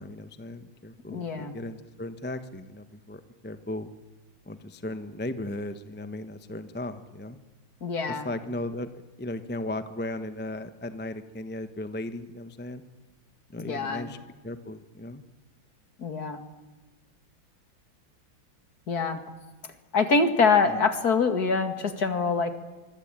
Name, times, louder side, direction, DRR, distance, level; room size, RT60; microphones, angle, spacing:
voice 1, 0.0-3.9 4.5-7.4 8.1-8.9 9.2-12.8 13.5-14.2 14.4-15.2 20.7-20.8, left 1 dB, 10° left, 10 dB, 0.5 m, -36 dB
voice 2, 1.1-1.5 7.8-8.3 13.6-14.1 16.0-16.4 18.9-19.2 19.9-22.5, left 4 dB, 50° left, 8 dB, 2.5 m, -25 dB
25.0 x 24.0 x 9.0 m, 1.2 s
omnidirectional pair, 2.3 m